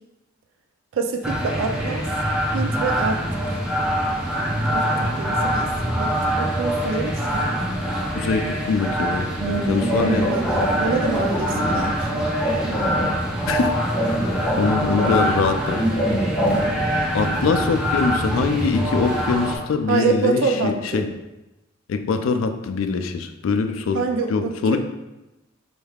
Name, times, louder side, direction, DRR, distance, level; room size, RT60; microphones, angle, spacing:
voice 1, 0.9-2.1 2.5-3.2 4.7-7.5 9.4-12.3 16.5-16.7 19.9-21.0 23.9-24.8, right 4 dB, 80° right, 4 dB, 0.4 m, -26 dB
sound 1, 1.2-19.6, equal, 5° right, 0.5 m, -24 dB
voice 2, 8.1-9.3 9.7-10.3 11.7-11.8 13.5-13.8 14.0-14.2 14.6-15.8 17.1-21.1 21.9-24.0 24.3-24.8, left 4 dB, 80° left, 8 dB, 0.3 m, -23 dB
sound 2, 9.1-16.7, equal, 20° left, 1.2 m, -26 dB
4.3 x 3.4 x 2.3 m, 0.99 s
head